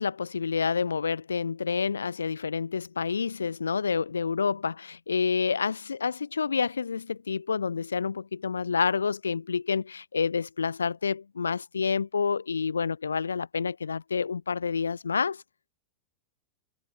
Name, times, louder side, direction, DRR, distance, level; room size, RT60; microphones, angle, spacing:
voice 1, 0.0-15.4, left 5 dB, 75° left, 6.7 m, -28 dB
figure-of-eight pair, 90°, 0 cm